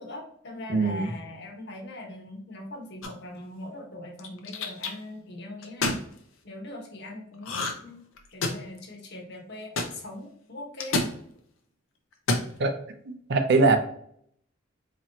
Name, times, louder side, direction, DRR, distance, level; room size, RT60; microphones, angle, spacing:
voice 1, 0.0-6.0 6.4-8.1 8.3-11.0, left 1 dB, 55° left, 1 dB, 1.1 m, -41 dB
voice 2, 0.7-1.1 12.6-12.7 13.1-13.8, right 3 dB, 55° right, 7 dB, 0.6 m, -22 dB
sound 1, 3.0-3.4 4.2-4.9 5.6-6.0 7.4-7.9 8.2-8.8 9.8-9.9 10.8-11.1 12.1-12.5, left 3 dB, 80° left, 0.7 m, -28 dB
4.0 x 3.1 x 2.8 m, 0.66 s
head